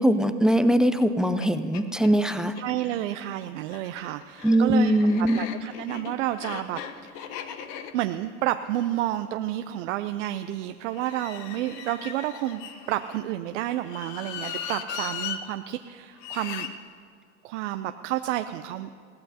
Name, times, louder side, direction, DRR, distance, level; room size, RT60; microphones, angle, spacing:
voice 1, 0.0-2.5 4.4-5.4, equal, ahead, 11 dB, 0.5 m, -21 dB
sound 1, 1.0-1.1 1.4-1.5 1.7-2.7 3.6-9.7 10.9-13.2 13.8-15.4 16.2-16.7, left 8 dB, 50° left, 1.1 m, -38 dB
voice 2, 2.6-4.9 5.2-7.4 7.9-12.6 12.9-16.8 17.4-18.9, right 13 dB, 75° right, 8 dB, 0.6 m, -30 dB
21.5 x 16.5 x 2.8 m, 2.4 s
hypercardioid pair, 95°, 37 cm